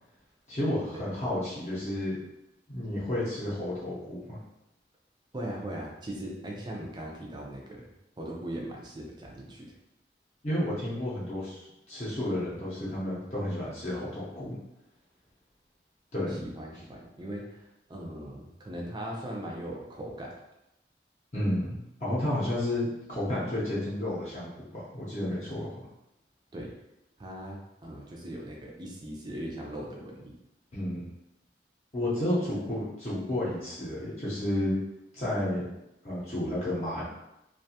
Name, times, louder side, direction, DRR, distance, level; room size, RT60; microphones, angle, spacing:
voice 1, 0.5-2.2 2.7-4.4 10.4-14.6 16.1-16.4 21.3-25.9 30.7-31.0 31.9-34.8 35.1-35.7 36.0-37.0, left 1 dB, 40° left, -9 dB, 0.7 m, -31 dB
voice 2, 5.3-7.8 8.2-9.7 16.3-20.3 26.5-26.7 27.2-30.3, right 1 dB, 25° right, -2 dB, 0.4 m, -39 dB
2.5 x 2.2 x 2.7 m, 0.88 s
head